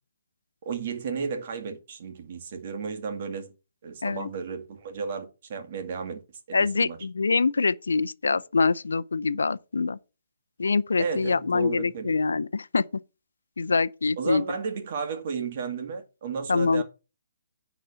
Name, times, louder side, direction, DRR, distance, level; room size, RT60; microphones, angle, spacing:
voice 1, 0.6-3.5 3.8-6.2 6.5-7.0 11.0-12.2 14.2-16.8, right 5 dB, 45° right, 2.2 m, -33 dB
voice 2, 6.5-10.0 10.6-12.8 13.6-14.5 16.5-16.8, left 4 dB, 80° left, 0.6 m, -25 dB
10.0 x 4.1 x 7.0 m
figure-of-eight pair, 140°, 0 cm